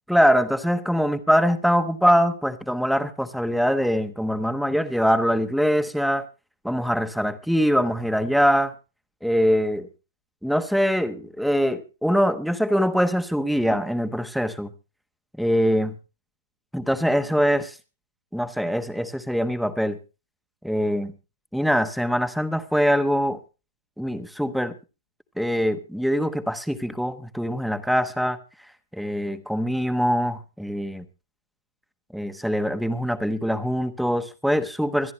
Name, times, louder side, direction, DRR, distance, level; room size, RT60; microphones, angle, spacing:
voice 1, 0.1-6.3 6.6-8.7 9.2-9.9 10.4-14.7 15.4-15.9 16.7-17.7 18.3-20.0 20.6-21.1 21.5-23.4 24.0-24.7 25.4-28.4 28.9-31.0 32.1-35.1, equal, ahead, 10 dB, 1.2 m, -23 dB
25.5 x 10.5 x 3.1 m, 0.30 s
hypercardioid pair, 145°, 0 cm